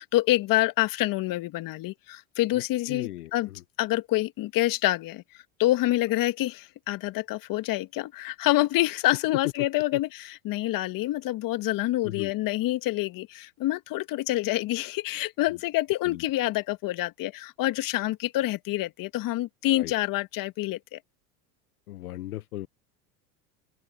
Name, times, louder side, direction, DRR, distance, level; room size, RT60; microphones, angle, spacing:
voice 1, 0.0-3.5 3.8-5.2 5.6-21.0, left 16 dB, 50° left, 1.8 m, -27 dB
voice 2, 2.9-3.6 9.9-10.0 12.0-12.3 16.0-16.2 19.7-19.9 21.9-22.7, left 15 dB, 85° left, 0.9 m, -37 dB
open air
hypercardioid pair, 90°, 44 cm